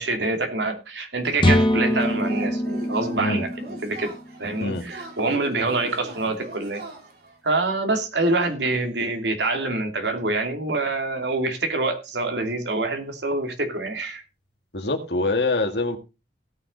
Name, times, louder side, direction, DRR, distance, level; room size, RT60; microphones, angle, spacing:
voice 1, 0.0-3.5 3.8-4.1 4.4-6.8 7.4-14.2, right 2 dB, 75° right, 5 dB, 2.8 m, -26 dB
Yell / Cheering, 1.2-7.4, right 1 dB, 60° right, 3.4 m, -39 dB
sound 1, 1.4-5.2, left 1 dB, 30° left, 1.3 m, -24 dB
voice 2, 14.7-16.0, left 2 dB, 70° left, 6 dB, 2.1 m, -24 dB
17.5 x 6.6 x 4.0 m, 0.28 s
head